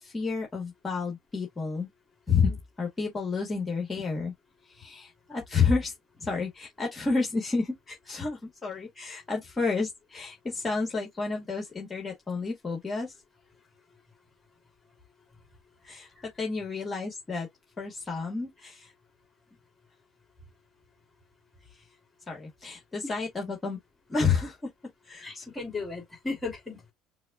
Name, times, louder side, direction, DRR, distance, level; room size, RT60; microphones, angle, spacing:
voice 1, 0.0-1.9 2.3-2.5 2.8-4.3 4.7-13.1 15.8-16.1 16.4-17.5 17.8-18.9 21.7-21.8 22.3-23.8 24.1-24.6 25.0-25.5, left 4 dB, 30° left, 1.8 m, -30 dB
voice 2, 25.2-26.9, left 3 dB, 10° left, 3.0 m, -36 dB
6.2 x 2.4 x 2.4 m
hypercardioid pair, 65°, 0 cm